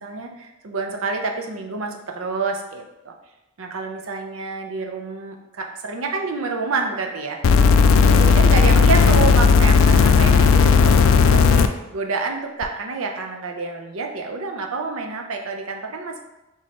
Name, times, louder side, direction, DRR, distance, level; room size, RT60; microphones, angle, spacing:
voice 1, 0.0-3.1 3.6-7.6 7.9-16.2, right 4 dB, 80° right, 3 dB, 0.6 m, -28 dB
sound 1, 7.4-11.7 12.6-12.7, left 5 dB, 70° left, 0.3 m, -14 dB
3.6 x 3.1 x 4.2 m, 0.99 s
head